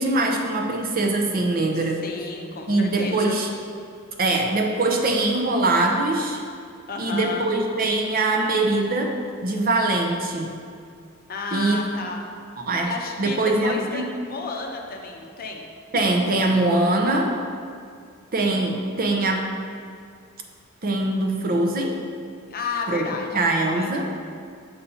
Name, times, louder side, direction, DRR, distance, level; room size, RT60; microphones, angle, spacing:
voice 1, 0.0-2.0 2.7-3.5 4.2-6.4 7.0-9.2 9.4-10.5 11.5-11.8 12.6-12.9 13.2-14.0 15.9-17.3 18.3-19.6 20.8-21.9 22.9-23.0 23.3-24.1, right 2 dB, 45° right, 2 dB, 0.7 m, -22 dB
voice 2, 2.0-3.4 6.9-7.5 11.3-12.3 12.8-15.7 22.5-23.3 23.6-23.9, left 4 dB, 45° left, 1 dB, 0.7 m, -32 dB
6.9 x 4.2 x 5.5 m, 2.3 s
head